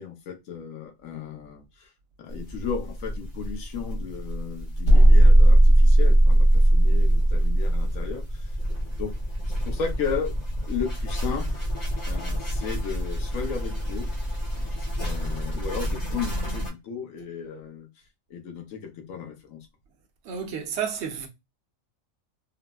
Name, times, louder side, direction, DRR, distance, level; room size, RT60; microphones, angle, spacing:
voice 1, 0.0-1.9 2.2-8.5 9.0-9.1 9.6-10.3 10.6-11.7 12.1-14.1 14.5-17.9 18.3-19.7, left 6 dB, 80° left, 1.1 m, -35 dB
sound 1, 2.3-16.7, equal, 35° left, 0.9 m, -31 dB
sound 2, 4.8-7.9, right 1 dB, 60° left, 1.2 m, -15 dB
voice 2, 20.2-21.3, right 7 dB, 60° right, 0.9 m, -31 dB
3.8 x 2.0 x 2.3 m
omnidirectional pair, 1.4 m